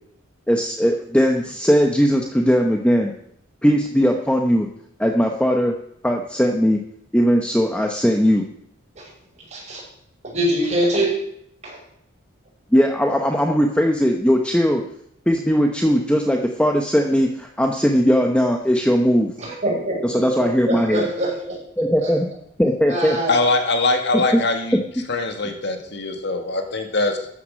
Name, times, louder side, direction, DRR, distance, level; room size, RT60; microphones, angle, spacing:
voice 1, 0.5-3.1 3.6-4.7 5.0-5.7 6.0-6.8 7.1-8.4 12.7-14.8 15.3-19.3 20.0-21.1 21.8-22.3 22.6-23.2 24.3-24.4, equal, 5° left, 3 dB, 0.9 m, -19 dB
voice 2, 9.5-9.8 10.2-11.2 11.6-11.8 19.4-21.6 22.0-22.1 22.9-23.3, right 1 dB, 35° right, -3 dB, 6.4 m, -24 dB
voice 3, 23.3-24.8 25.1-27.3, left 2 dB, 60° left, 5 dB, 1.9 m, -22 dB
14.0 x 9.7 x 6.4 m, 0.71 s
head